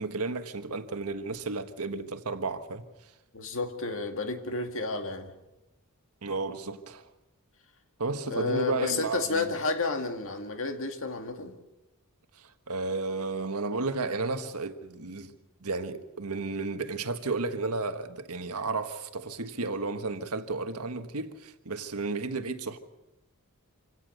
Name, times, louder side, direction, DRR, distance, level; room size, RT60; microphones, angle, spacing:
voice 1, 0.0-2.8 6.2-7.0 8.0-9.5 12.3-15.3 15.6-22.8, right 3 dB, 90° right, 1.5 m, -33 dB
voice 2, 3.3-5.3 8.3-11.5, left 3 dB, 65° left, 2.2 m, -31 dB
26.0 x 17.5 x 6.7 m
head